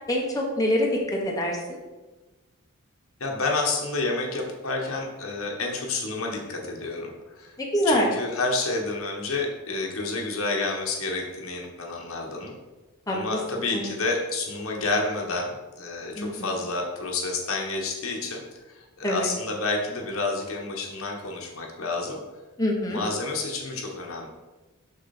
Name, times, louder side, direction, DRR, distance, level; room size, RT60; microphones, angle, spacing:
voice 1, 0.1-1.8 7.6-8.1 13.1-13.4 13.7-13.8 16.1-16.5 19.0-19.3 22.6-23.0, left 1 dB, 15° left, -2 dB, 1.1 m, -25 dB
voice 2, 3.2-7.6 7.8-12.5 13.1-22.2 22.9-24.3, left 3 dB, 75° left, 0 dB, 1.4 m, -29 dB
6.7 x 6.2 x 4.3 m, 1.1 s
head